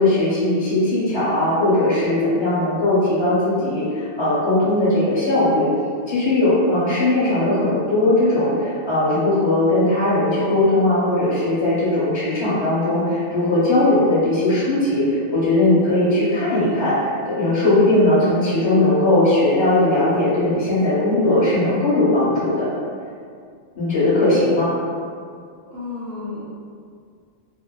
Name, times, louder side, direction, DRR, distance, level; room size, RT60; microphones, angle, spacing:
voice 1, 0.0-5.7 6.1-22.7 23.7-24.7, left 1 dB, 25° left, -10 dB, 0.8 m, -19 dB
voice 2, 25.6-26.4, left 3 dB, 75° right, -8 dB, 1.1 m, -32 dB
2.7 x 2.0 x 2.2 m, 2.2 s
omnidirectional pair, 1.3 m